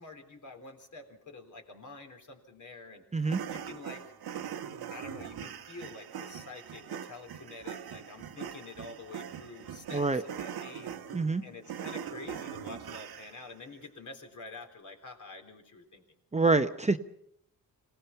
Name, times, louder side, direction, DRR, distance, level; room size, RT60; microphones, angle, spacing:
voice 1, 0.0-4.1 4.9-11.0 11.4-16.0, left 3 dB, 55° left, 4 dB, 3.8 m, -47 dB
sound 1, 3.2-13.5, right 8 dB, 85° right, 1.3 m, -42 dB
voice 2, 9.9-10.2 11.1-11.4 16.3-17.0, right 3 dB, 20° right, 8 dB, 0.8 m, -26 dB
25.5 x 18.0 x 5.8 m, 0.74 s
cardioid pair, 100°, 37 cm